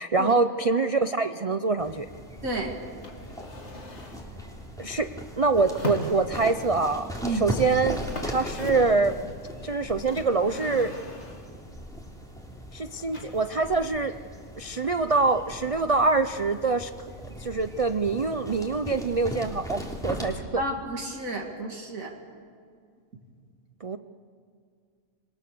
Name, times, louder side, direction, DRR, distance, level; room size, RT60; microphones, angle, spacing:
voice 1, 0.0-2.1 4.8-5.1 5.4-9.2 9.6-10.9 12.7-14.1 14.6-16.9 17.4-20.6 23.8-24.0, right 3 dB, 40° right, 10 dB, 0.5 m, -25 dB
sound 1, 1.8-20.4, equal, ahead, 3.2 m, -38 dB
voice 2, 2.4-2.8 7.2-7.4 20.6-22.1, right 1 dB, 80° right, 1 dB, 2.9 m, -31 dB
sound 2, 3.0-4.3 5.5-6.6 7.6-7.7 7.9-9.1 10.1-11.6 13.1-13.8, left 2 dB, 55° left, 2.6 m, -39 dB
27.0 x 22.5 x 6.9 m, 2.2 s
omnidirectional pair, 1.4 m